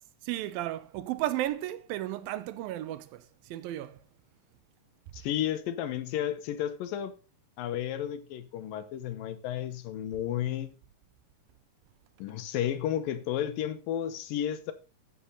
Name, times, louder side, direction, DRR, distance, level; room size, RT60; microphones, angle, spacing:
voice 1, 0.2-4.0, right 14 dB, 90° right, 2.5 m, -34 dB
voice 2, 5.1-7.1 7.6-10.7 12.2-14.7, left 10 dB, 80° left, 2.7 m, -32 dB
14.0 x 6.6 x 3.9 m
omnidirectional pair, 4.1 m